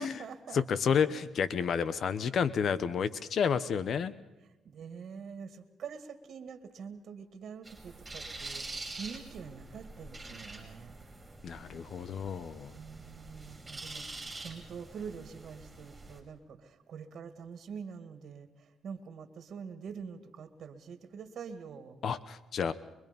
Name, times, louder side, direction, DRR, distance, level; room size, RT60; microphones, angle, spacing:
voice 1, 0.0-0.6 4.6-10.9 12.7-22.0, right 6 dB, 60° right, 8 dB, 2.2 m, -45 dB
voice 2, 0.5-4.1 11.4-12.7 22.0-22.7, left 7 dB, 60° left, 15 dB, 1.0 m, -30 dB
sound 1, 7.6-16.2, right 3 dB, 20° right, 5.3 m, -46 dB
24.0 x 23.0 x 5.4 m, 1.0 s
cardioid pair, 90°, 0 cm